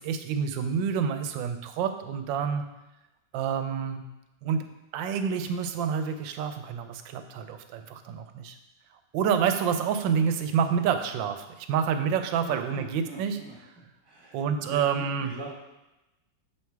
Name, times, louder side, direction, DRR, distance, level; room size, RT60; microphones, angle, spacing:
voice 1, 0.0-2.6 3.3-4.0 4.4-4.6 4.9-8.6 9.1-13.4 14.3-15.3, right 7 dB, 90° right, 8 dB, 1.3 m, -28 dB
voice 2, 12.4-15.5, right 3 dB, 15° right, -4 dB, 1.1 m, -43 dB
6.8 x 3.2 x 4.6 m, 0.97 s
omnidirectional pair, 2.0 m